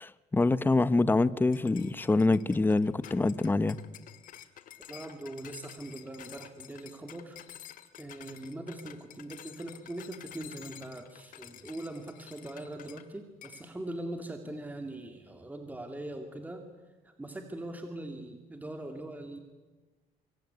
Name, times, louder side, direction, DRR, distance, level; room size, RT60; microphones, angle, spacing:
voice 1, 0.0-3.8, left 3 dB, 15° left, 1.0 m, -25 dB
sound 1, 1.5-13.1 13.4-13.7, left 11 dB, 65° left, 2.0 m, -50 dB
voice 2, 4.9-7.4 8.0-16.7 17.0-19.4, right 1 dB, 10° right, 2.4 m, -41 dB
25.0 x 24.5 x 9.6 m
cardioid pair, 125°, 15 cm